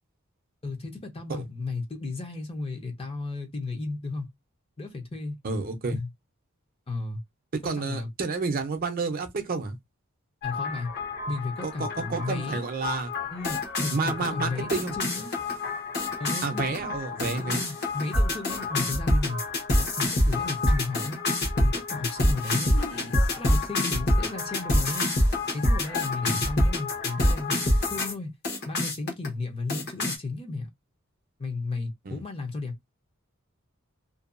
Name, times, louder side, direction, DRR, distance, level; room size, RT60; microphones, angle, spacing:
voice 1, 0.6-4.3 4.8-5.4 5.9-6.1 6.9-7.2 7.6-8.1 10.4-10.9 11.3-12.7 13.3-15.3 16.2-17.0 17.4-19.4 19.8-21.2 21.6-25.1 25.5-28.3 28.7-30.7 31.4-32.7, left 3 dB, 25° left, 0.6 m, -34 dB
voice 2, 5.4-6.0 7.6-9.8 11.6-13.1 13.9-14.9 16.4-17.6 26.2-26.4 32.0-32.2, right 4 dB, 45° right, 0.6 m, -30 dB
sound 1, 10.4-28.1 28.4-29.3 29.7-30.2, left 1 dB, 50° left, 1.0 m, -27 dB
2.6 x 2.3 x 2.5 m
head